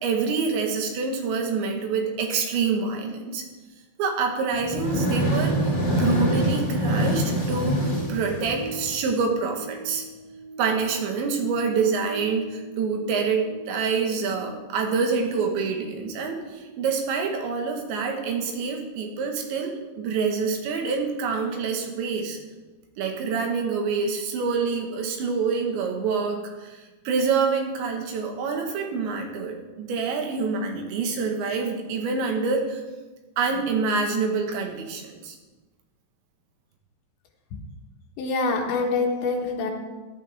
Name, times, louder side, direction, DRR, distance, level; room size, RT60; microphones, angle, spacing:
voice 1, 0.0-3.4 4.0-10.0 10.6-22.4 23.0-32.8 33.4-35.4, right 5 dB, 75° right, 3 dB, 3.7 m, -26 dB
sound 1, 4.5-9.1, equal, 30° left, 0.9 m, -25 dB
sound 2, 4.9-21.4 21.7-21.8, right 1 dB, 60° right, 1.9 m, -42 dB
voice 2, 38.2-39.7, left 3 dB, 75° left, 3 dB, 3.4 m, -25 dB
16.5 x 12.0 x 3.5 m, 1.2 s
omnidirectional pair, 5.4 m